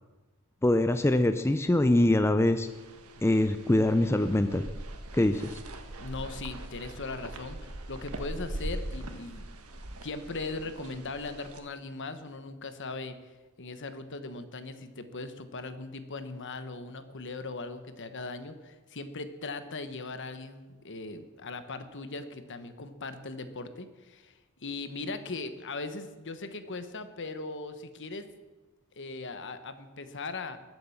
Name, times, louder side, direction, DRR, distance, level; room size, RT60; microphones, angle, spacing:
voice 1, 0.6-2.7 3.2-4.6 5.1-5.6, left 1 dB, 10° left, 9 dB, 0.5 m, -24 dB
sound 1, 2.6-11.6, right 1 dB, 90° right, 1.5 m, -41 dB
voice 2, 6.0-9.5 10.0-13.2 13.6-28.3 29.0-30.6, left 3 dB, 60° left, 10 dB, 1.3 m, -39 dB
21.5 x 7.8 x 7.2 m, 1.2 s
head